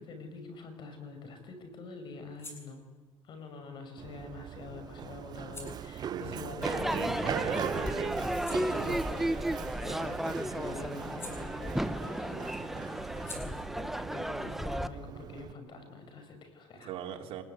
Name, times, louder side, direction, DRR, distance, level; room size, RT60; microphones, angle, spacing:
voice 1, 0.0-2.9 3.2-7.7 8.8-9.2 9.8-16.9, left 3 dB, 50° left, 7 dB, 6.2 m, -46 dB
sound 1, 2.2-7.5 7.9-12.1 12.4-15.8, left 2 dB, 25° left, 7.5 m, -54 dB
Run, 4.0-15.5, right 9 dB, 40° right, 0.8 m, -41 dB
voice 2, 6.1-6.5 6.9-8.3 8.7-9.0 16.8-17.4, right 9 dB, 65° right, 3 dB, 3.4 m, -39 dB
Crowd / Fireworks, 6.6-14.9, right 1 dB, 5° right, 0.8 m, -34 dB
26.0 x 20.0 x 9.6 m, 1.3 s
cardioid pair, 115°, 10 cm